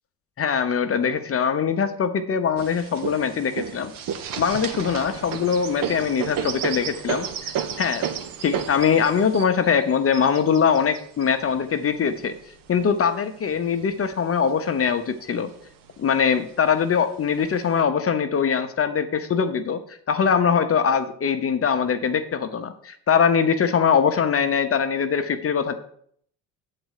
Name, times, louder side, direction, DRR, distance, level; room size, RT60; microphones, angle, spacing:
voice 1, 0.4-3.9 4.4-8.1 8.4-12.3 12.7-15.5 16.0-19.8 20.1-25.8, left 6 dB, 35° left, 8 dB, 0.8 m, -22 dB
sound 1, 2.6-12.8 13.5-14.4 14.8-14.9 15.2-15.9 16.7-16.8 17.4-17.8, right 8 dB, 55° right, 0.9 m, -32 dB
7.7 x 4.1 x 6.5 m, 0.62 s
supercardioid pair, 85°, 40 cm